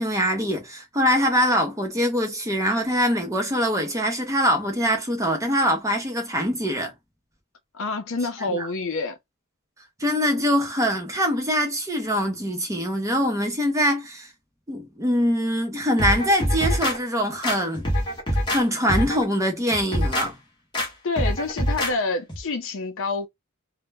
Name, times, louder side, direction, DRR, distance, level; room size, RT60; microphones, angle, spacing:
voice 1, 0.0-6.9 8.4-8.7 10.0-14.3 14.7-17.9 18.5-20.4, equal, 15° right, 0.6 m, -23 dB
voice 2, 7.7-9.2 20.8-23.3, left 3 dB, 60° left, 0.5 m, -28 dB
sound 1, 16.0-17.0 17.4-18.6 18.9-19.2 19.7-20.3 20.7-20.9 21.2-21.9 22.3-22.4, equal, 20° left, 0.7 m, -24 dB
2.1 x 2.0 x 3.3 m
head